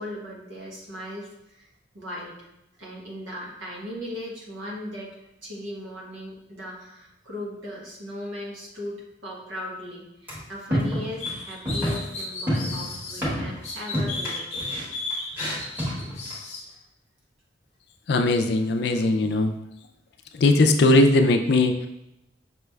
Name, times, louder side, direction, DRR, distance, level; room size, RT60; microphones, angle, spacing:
voice 1, 0.0-1.7 1.9-2.4 2.8-14.7, left 1 dB, 85° right, -3 dB, 1.2 m, -38 dB
sound 1, 10.3-10.4 10.7-11.4 11.6-12.1 12.5-13.7 13.9-16.3, equal, 10° right, 1.5 m, -28 dB
sound 2, 11.2-13.2 13.6-16.6, left 3 dB, 35° left, 0.7 m, -34 dB
voice 2, 18.1-19.5 20.3-21.9, left 2 dB, 60° left, 6 dB, 0.4 m, -19 dB
5.9 x 3.2 x 2.3 m, 0.87 s
head